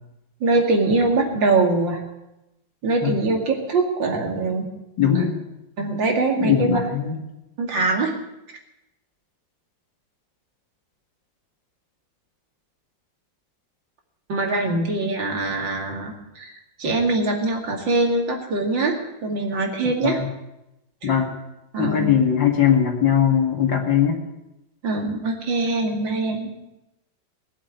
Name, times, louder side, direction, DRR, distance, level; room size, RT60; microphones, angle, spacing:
voice 1, 0.4-2.0 2.8-4.7 5.8-6.8 7.6-8.1 14.3-16.5 16.8-20.2 21.0-21.2 21.7-22.1 24.8-26.5, right 3 dB, 75° right, 1 dB, 3.1 m, -23 dB
voice 2, 5.0-5.4 6.4-7.1 20.0-20.3 21.0-21.3 21.8-24.2, left 8 dB, 70° left, 2 dB, 2.9 m, -20 dB
19.0 x 7.6 x 9.4 m, 0.92 s
omnidirectional pair, 2.1 m